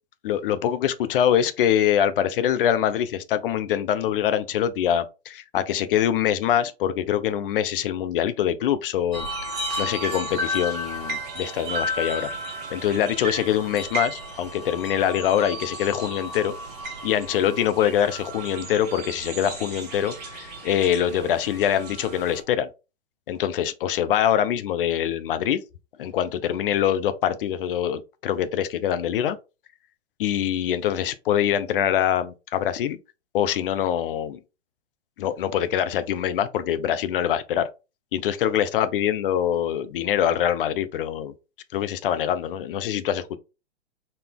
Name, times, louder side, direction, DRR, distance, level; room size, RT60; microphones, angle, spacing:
voice 1, 0.2-9.3 9.8-12.3 12.7-16.5 17.0-22.7 23.3-25.6 26.0-29.4 30.2-33.0 33.3-34.4 35.2-37.7 38.1-41.3 41.7-43.4, left 10 dB, 55° left, 0.6 m, -24 dB
sound 1, 9.1-22.4, equal, 30° right, 1.4 m, -33 dB
4.1 x 2.7 x 3.6 m
hypercardioid pair, 115°, 33 cm